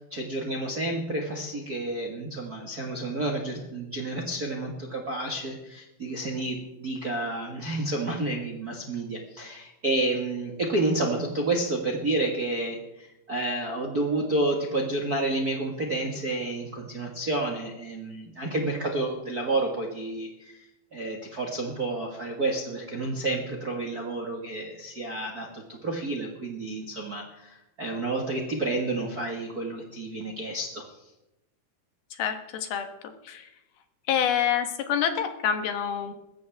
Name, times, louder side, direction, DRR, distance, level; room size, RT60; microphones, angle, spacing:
voice 1, 0.0-20.6 20.9-30.9, right 2 dB, 45° right, 1 dB, 1.2 m, -30 dB
voice 2, 32.2-32.8 33.3-33.4 34.1-36.1, left 8 dB, 80° left, 6 dB, 3.2 m, -27 dB
21.0 x 15.5 x 3.5 m, 0.94 s
omnidirectional pair, 4.4 m